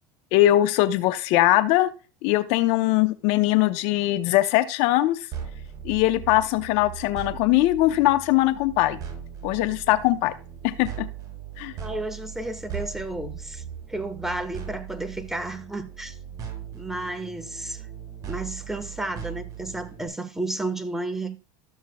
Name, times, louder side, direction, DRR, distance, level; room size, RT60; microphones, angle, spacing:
voice 1, 0.3-1.9 2.2-5.2 5.8-9.0 9.4-10.3 10.6-11.1 11.6-11.7, left 15 dB, 65° left, 0.7 m, -21 dB
sound 1, 5.3-20.1, right 8 dB, 35° right, 4.1 m, -39 dB
voice 2, 11.8-13.6 13.9-16.2 16.7-17.8 18.3-21.4, right 2 dB, 5° right, 1.3 m, -32 dB
13.0 x 7.2 x 2.3 m
supercardioid pair, 100°, 11 cm